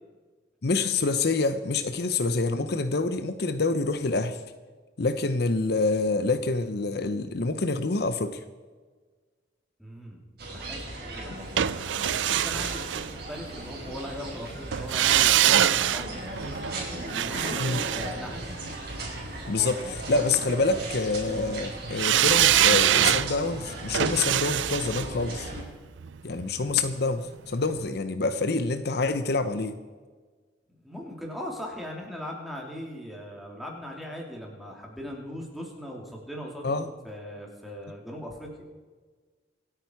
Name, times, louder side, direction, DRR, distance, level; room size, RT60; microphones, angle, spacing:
voice 1, 0.6-4.4 5.0-8.4 17.6-17.8 19.5-25.5 26.2-29.8 36.6-36.9, left 3 dB, 60° left, 10 dB, 0.8 m, -27 dB
voice 2, 9.8-10.2 10.5-16.8 17.1-18.4 30.8-38.5, equal, ahead, -1 dB, 3.2 m, -39 dB
sound 1, 10.4-25.6, right 1 dB, 60° right, 4.5 m, -37 dB
sound 2, 11.6-13.7 14.7-19.0 22.0-27.0 27.3-27.4, right 11 dB, 85° right, 0.5 m, -25 dB
26.0 x 9.0 x 4.7 m, 1.4 s
head